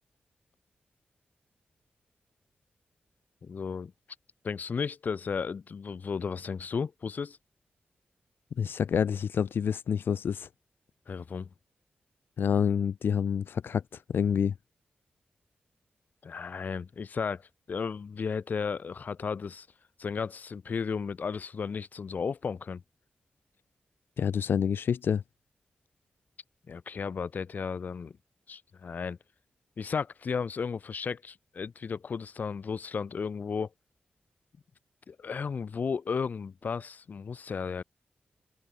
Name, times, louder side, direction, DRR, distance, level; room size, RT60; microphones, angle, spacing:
voice 1, 3.4-3.9 4.4-7.4 11.1-11.5 16.2-17.4 17.7-19.7 20.0-22.8 26.7-28.1 28.5-29.2 29.8-33.7 35.1-37.8, left 5 dB, 50° left, 3.7 m, -34 dB
voice 2, 8.6-10.5 12.4-14.5 24.2-25.2, left 7 dB, 90° left, 1.3 m, -28 dB
wide cardioid pair, 175°, 4 cm